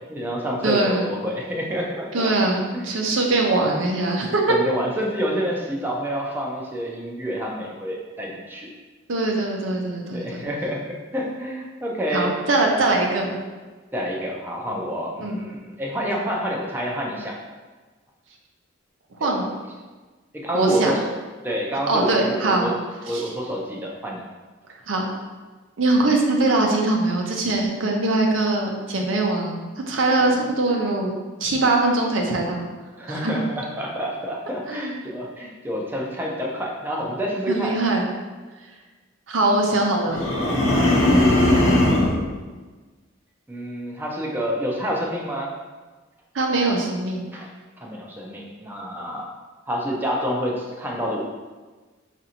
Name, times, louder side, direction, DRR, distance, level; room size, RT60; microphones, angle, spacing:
voice 1, 0.0-2.3 2.7-2.8 4.5-8.7 10.1-10.8 11.1-12.3 13.9-17.4 19.2-19.3 20.3-21.1 21.4-22.8 23.1-24.2 30.2-30.4 33.0-37.8 40.9-41.1 43.5-45.5 47.3-47.5 47.8-49.3 49.7-51.2, equal, 10° right, -2 dB, 0.4 m, -28 dB
voice 2, 0.6-1.1 2.1-4.6 9.1-10.2 12.1-13.3 15.2-15.4 19.2-19.5 20.5-20.9 21.9-22.7 23.1-23.2 24.9-25.0 25.8-29.6 29.9-31.1 31.4-32.7 33.1-33.3 34.7-34.9 37.5-38.1 39.3-40.2 46.3-47.3, right 2 dB, 85° right, 0 dB, 0.6 m, -22 dB
sound 1, 40.1-42.2, left 1 dB, 80° left, 0.8 m, -18 dB
5.1 x 2.5 x 2.8 m, 1.3 s
head